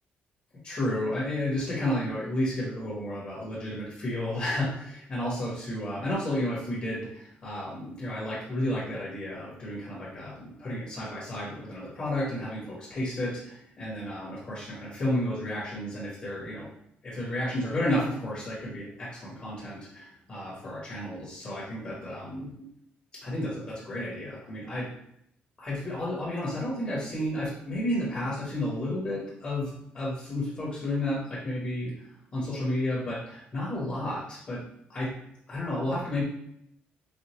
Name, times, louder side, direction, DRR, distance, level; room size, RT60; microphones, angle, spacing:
voice 1, 0.6-16.7 17.0-22.6 23.2-24.9 25.6-31.9 32.3-34.6 34.9-35.1 35.5-36.2, left 1 dB, 30° left, -7 dB, 1.1 m, -32 dB
5.1 x 2.5 x 3.0 m, 0.74 s
cardioid pair, 180°, 4 cm